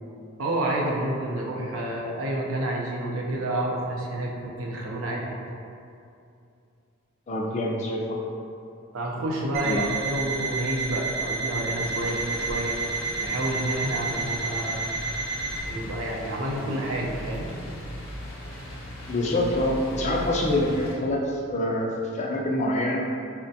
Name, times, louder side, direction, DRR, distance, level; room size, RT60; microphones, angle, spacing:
voice 1, 0.4-5.4 8.9-12.8 13.2-15.0 15.6-17.5, right 1 dB, 85° right, -2 dB, 0.5 m, -29 dB
voice 2, 7.3-8.2 9.6-9.9 19.1-21.2 21.5-21.9 22.1-23.1, left 1 dB, 35° left, -1 dB, 0.3 m, -25 dB
Alarm, 9.5-15.6, right 4 dB, 35° right, 0.9 m, -30 dB
sound 1, 11.8-21.0, equal, 80° left, 0.6 m, -38 dB
4.2 x 2.1 x 2.7 m, 2.5 s
head